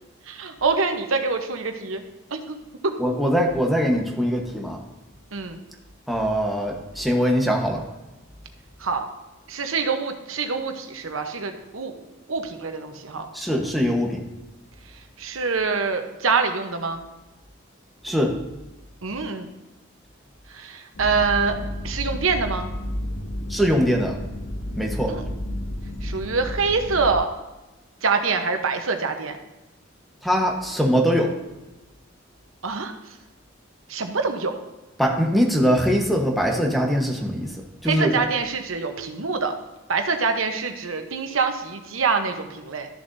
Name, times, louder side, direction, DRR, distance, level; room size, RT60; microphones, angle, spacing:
voice 1, 0.3-2.0 2.3-2.4 5.3-5.6 8.8-9.1 9.5-12.0 12.3-13.3 13.9-14.0 15.2-17.0 19.0-19.5 20.5-21.6 21.8-22.7 25.1-25.2 26.0-27.3 28.0-29.4 32.6-32.9 33.9-34.5 37.8-39.5 39.9-42.9, right 4 dB, 80° right, 6 dB, 1.0 m, -25 dB
voice 2, 3.0-4.8 6.1-7.8 13.3-14.2 18.0-18.4 23.5-24.2 24.7-25.1 30.2-31.3 35.0-37.6 37.8-38.2, equal, ahead, 1 dB, 1.1 m, -22 dB
sound 1, 20.9-27.2, left 1 dB, 80° left, 1.0 m, -31 dB
13.0 x 7.0 x 2.7 m, 1.1 s
head